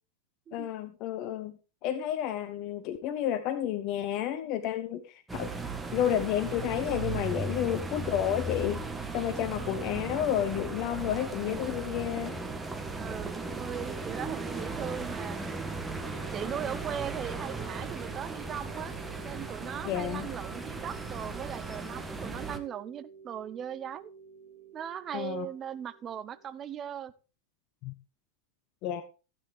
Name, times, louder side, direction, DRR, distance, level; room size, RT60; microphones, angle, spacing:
voice 1, 0.5-5.5 5.9-8.8 9.1-12.4 19.8-20.3 25.1-25.5 27.8-27.9 28.8-29.0, left 10 dB, 40° left, 11 dB, 1.0 m, -31 dB
sound 1, 5.3-22.6, right 3 dB, 10° right, 1.6 m, -37 dB
voice 2, 13.0-15.6 16.3-18.9 19.2-24.1 24.7-27.1, right 9 dB, 25° right, 14 dB, 0.7 m, -39 dB
sound 2, 16.1-26.9, right 6 dB, 55° right, 4.8 m, -51 dB
15.5 x 8.9 x 3.6 m, 0.34 s
figure-of-eight pair, 90°, 0 cm